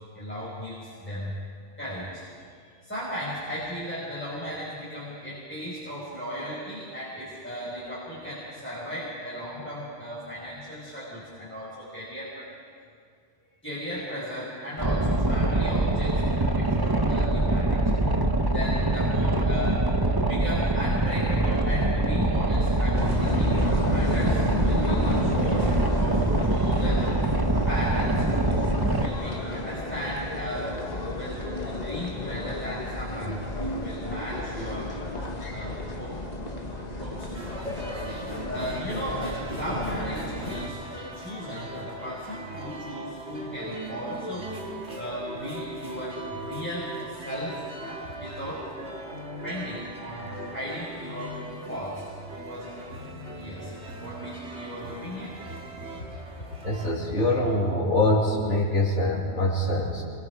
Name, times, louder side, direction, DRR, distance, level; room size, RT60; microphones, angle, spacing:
voice 1, 0.1-1.3 1.8-12.5 13.6-17.8 18.4-28.7 29.0-30.7 31.1-34.9 35.5-36.2 37.0-37.4 38.0-44.5 44.9-48.7 49.4-51.4 51.7-52.1 52.4-52.8 53.4-53.7 54.0-55.4, equal, 10° left, -8 dB, 5.1 m, -36 dB
Boat Water vehicle, 14.8-29.1, right 2 dB, 20° right, 1.0 m, -24 dB
sound 1, 22.9-40.7, left 2 dB, 35° left, 1.9 m, -32 dB
sound 2, 37.3-56.9, right 1 dB, 70° right, 2.3 m, -39 dB
voice 2, 56.6-60.0, left 1 dB, 85° left, -5 dB, 3.2 m, -24 dB
26.0 x 22.5 x 4.8 m, 2.2 s
omnidirectional pair, 1.2 m